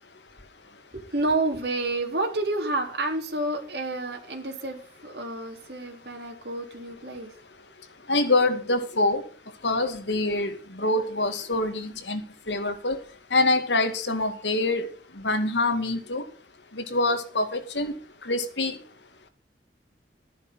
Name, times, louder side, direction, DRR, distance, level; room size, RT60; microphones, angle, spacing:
voice 1, 0.9-7.3, right 2 dB, 65° right, 3.6 m, -29 dB
voice 2, 8.1-9.2 9.6-13.0 13.3-14.9 15.2-16.2 16.7-18.0 18.2-18.8, left 2 dB, 85° left, 2.2 m, -25 dB
13.0 x 11.0 x 5.8 m
head